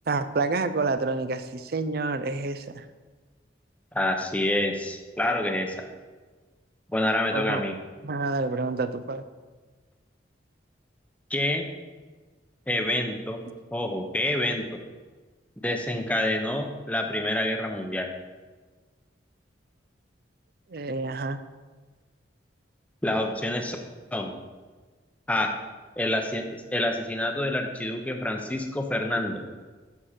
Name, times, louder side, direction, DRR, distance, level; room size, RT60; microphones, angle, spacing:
voice 1, 0.1-2.9 7.3-7.6 8.0-9.2 20.7-21.4, right 3 dB, 55° right, 12 dB, 0.5 m, -28 dB
voice 2, 3.9-5.9 6.9-7.7 11.3-11.7 12.7-13.4 13.7-14.6 15.6-18.1 23.0-23.8 24.1-24.3 25.3-25.5 26.0-29.5, left 1 dB, 10° left, 4 dB, 0.7 m, -27 dB
9.5 x 6.4 x 4.3 m, 1.4 s
head